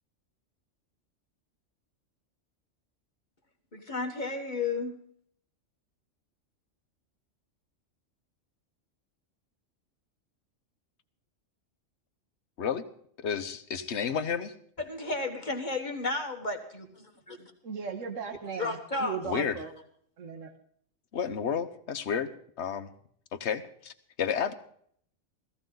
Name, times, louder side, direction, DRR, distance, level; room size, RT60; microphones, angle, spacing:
voice 1, 3.7-5.0 14.8-17.5 18.6-19.2, left 3 dB, 40° left, 4 dB, 1.6 m, -33 dB
voice 2, 13.2-14.5 19.2-19.6 21.1-22.3 22.6-22.9 23.3-23.9 24.2-24.5, left 7 dB, 65° left, 10 dB, 1.2 m, -31 dB
voice 3, 17.6-19.7 20.2-20.5, right 6 dB, 80° right, 6 dB, 1.7 m, -37 dB
17.0 x 14.5 x 3.9 m, 0.62 s
omnidirectional pair, 1.3 m